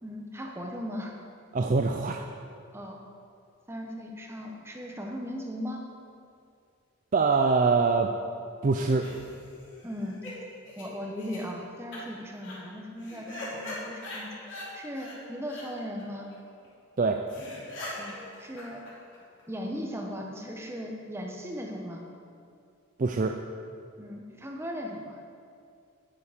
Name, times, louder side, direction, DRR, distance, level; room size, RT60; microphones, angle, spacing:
voice 1, 0.0-1.1 2.7-3.0 3.7-5.8 9.8-10.3 10.8-16.3 18.0-18.8 19.5-22.0 24.0-25.2, equal, 10° right, 1 dB, 1.0 m, -38 dB
voice 2, 1.5-2.2 7.1-8.1 8.6-9.1 17.0-17.2 23.0-23.4, right 4 dB, 35° right, 4 dB, 0.4 m, -24 dB
sound 1, 8.8-10.3 10.7-10.8 11.2-11.4 11.9-12.0 12.3-12.5 13.0-14.7 14.9-15.2 15.4-15.6 16.0-16.1 16.3-16.4 16.6-16.7 17.0-17.1 17.3-19.4, left 1 dB, 55° left, 3.1 m, -41 dB
9.9 x 9.4 x 5.0 m, 2.4 s
head